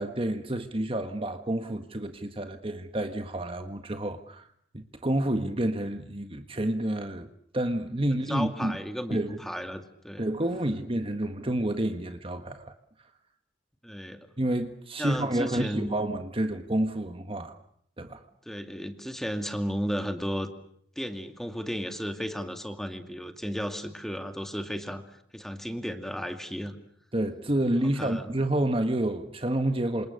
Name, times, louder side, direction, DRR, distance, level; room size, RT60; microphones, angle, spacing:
voice 1, 0.0-4.5 4.7-7.3 7.5-8.8 9.1-9.4 10.2-12.8 14.4-17.5 18.0-18.2 27.1-30.1, right 1 dB, 30° right, 1.6 m, -29 dB
voice 2, 8.3-10.3 13.8-14.3 15.0-15.9 18.5-20.5 21.0-25.0 25.3-26.8 28.0-28.3, equal, ahead, 2.5 m, -34 dB
28.5 x 27.5 x 6.7 m
head